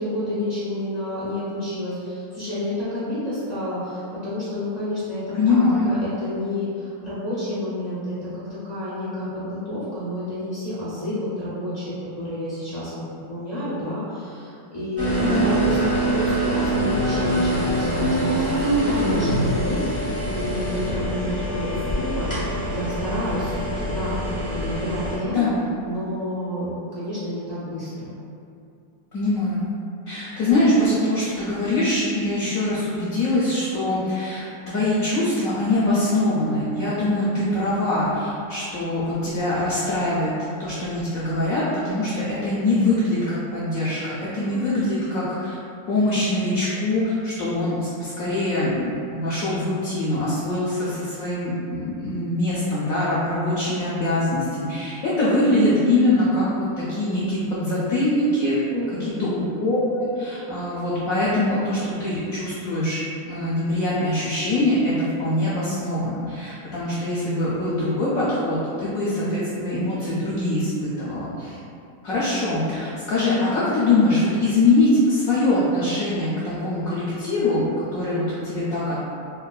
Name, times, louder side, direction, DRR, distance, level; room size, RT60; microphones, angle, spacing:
voice 1, 0.0-5.6 5.9-13.0 13.3-25.4 25.8-28.1 44.3-44.7 58.7-59.4, left 1 dB, 50° left, -12 dB, 0.4 m, -30 dB
voice 2, 5.4-5.9 15.2-15.6 25.3-25.6 29.1-29.6 30.1-40.3 40.6-45.5 45.9-58.6 58.9-71.6 72.0-79.0, left 2 dB, 70° left, -8 dB, 0.8 m, -23 dB
sound 1, 15.0-25.2, right 1 dB, 15° right, 0.5 m, -24 dB
4.2 x 2.2 x 2.3 m, 2.6 s
omnidirectional pair, 2.0 m